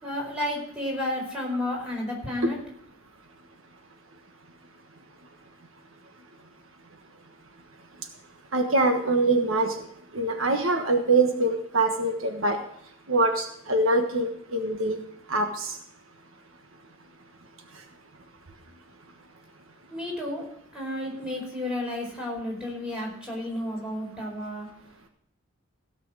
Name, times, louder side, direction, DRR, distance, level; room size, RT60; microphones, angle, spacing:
voice 1, 0.0-2.6 19.9-20.5 20.7-24.7, left 1 dB, 5° right, -2 dB, 4.8 m, -31 dB
voice 2, 8.5-9.7 10.1-12.6 13.1-15.0 15.3-15.7, right 2 dB, 70° right, 4 dB, 1.4 m, -24 dB
16.5 x 6.0 x 7.3 m, 0.70 s
head